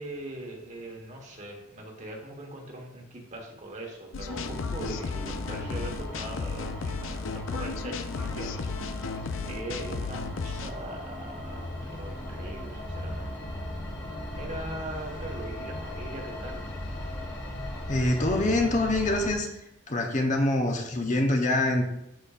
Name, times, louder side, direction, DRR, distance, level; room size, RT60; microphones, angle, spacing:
voice 1, 0.0-8.6 8.9-9.0 9.4-13.3 14.3-16.7, right 1 dB, 40° right, 1 dB, 1.3 m, -41 dB
sound 1, 4.1-10.7, left 4 dB, 85° left, 0.5 m, -34 dB
sound 2, 4.3-19.3, left 1 dB, 65° left, 1.8 m, -38 dB
voice 2, 17.9-19.5 19.9-21.8, left 2 dB, 40° left, 3 dB, 0.8 m, -25 dB
12.0 x 4.3 x 2.5 m, 0.87 s
head